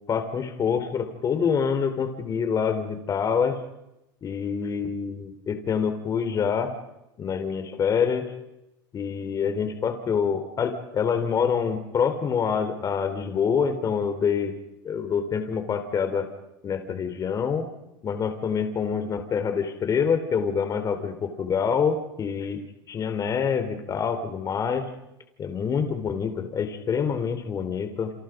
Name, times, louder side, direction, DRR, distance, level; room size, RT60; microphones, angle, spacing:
voice 1, 0.1-3.6 4.2-6.7 7.2-8.3 8.9-14.5 14.8-16.3 16.6-17.6 18.0-22.6 22.9-24.8 25.4-28.1, left 6 dB, 30° left, 7 dB, 4.1 m, -26 dB
29.5 x 26.5 x 5.3 m, 0.89 s
supercardioid pair, 115°, 11 cm